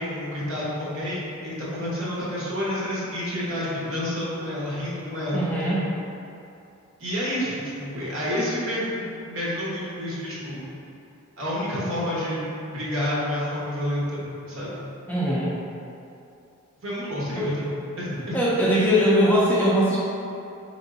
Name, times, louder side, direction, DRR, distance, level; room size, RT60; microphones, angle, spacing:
voice 1, 0.0-5.9 7.0-10.7 11.4-14.8 16.8-17.7 18.0-18.4, left 1 dB, 60° right, -8 dB, 1.1 m, -29 dB
voice 2, 5.3-5.9 15.1-15.5 17.4-17.5 18.3-20.0, equal, 10° left, -7 dB, 0.4 m, -21 dB
3.8 x 3.4 x 2.6 m, 2.7 s
head